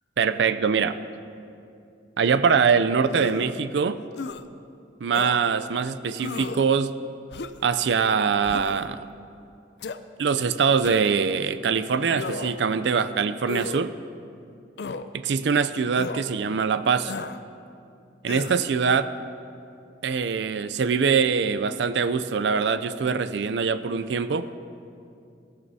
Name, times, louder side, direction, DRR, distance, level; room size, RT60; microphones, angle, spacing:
voice 1, 0.2-1.0 2.2-4.0 5.0-6.9 7.6-9.0 10.2-13.9 15.1-17.1 18.2-19.1 20.0-24.5, right 6 dB, 75° right, 12 dB, 0.4 m, -23 dB
sound 1, 3.1-3.6 4.2-4.4 5.1-5.4 6.2-6.6 7.3-7.7 8.4-8.8 9.8-10.0 10.8-11.2 12.1-12.6 13.5-13.8 14.8-15.1 16.0-16.2 17.1-17.4 18.3-18.6, left 4 dB, 70° left, 0.4 m, -34 dB
15.5 x 15.5 x 2.7 m, 2.5 s
head